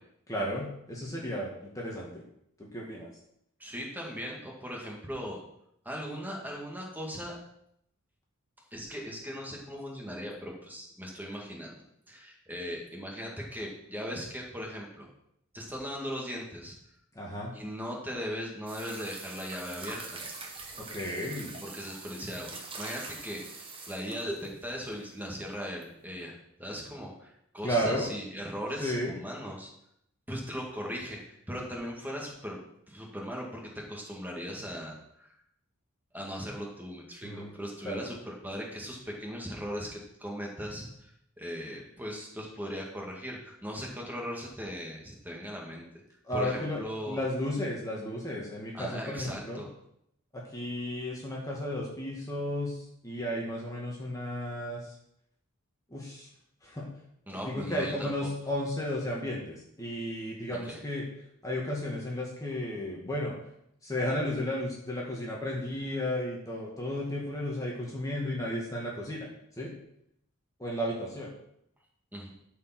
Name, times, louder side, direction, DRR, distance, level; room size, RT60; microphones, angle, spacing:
voice 1, 0.3-2.2 2.6-3.1 17.2-17.5 20.8-21.6 27.6-28.1 28.8-29.1 37.2-37.6 37.8-38.1 46.2-46.8 47.1-49.6 50.3-54.9 55.9-56.3 56.6-56.9 57.3-61.0 61.4-63.3 63.8-69.3 69.6-69.7 70.6-71.3, left 1 dB, 15° left, -3 dB, 1.8 m, -33 dB
voice 2, 3.6-5.4 5.8-7.4 8.7-11.8 12.1-15.1 15.5-16.8 17.5-20.2 21.6-29.7 30.3-32.6 32.9-35.3 36.1-41.1 41.4-45.9 46.3-47.2 48.7-49.7 57.3-58.1 60.5-60.8 72.1-72.3, equal, 10° right, -2 dB, 2.1 m, -38 dB
sound 1, 18.7-24.8 25.8-25.9, right 3 dB, 25° right, 1.5 m, -43 dB
13.0 x 5.0 x 6.0 m, 0.75 s
head